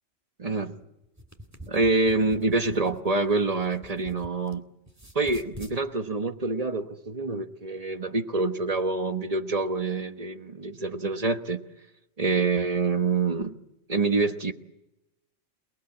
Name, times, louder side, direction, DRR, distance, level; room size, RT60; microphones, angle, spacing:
voice 1, 0.4-0.8 1.7-4.6 5.1-11.6 12.2-13.6 13.9-14.5, right 3 dB, 30° right, 1.3 m, -26 dB
sound 1, 1.0-4.6 4.9-5.8, right 1 dB, 15° right, 2.0 m, -46 dB
29.0 x 20.0 x 8.5 m
omnidirectional pair, 1.3 m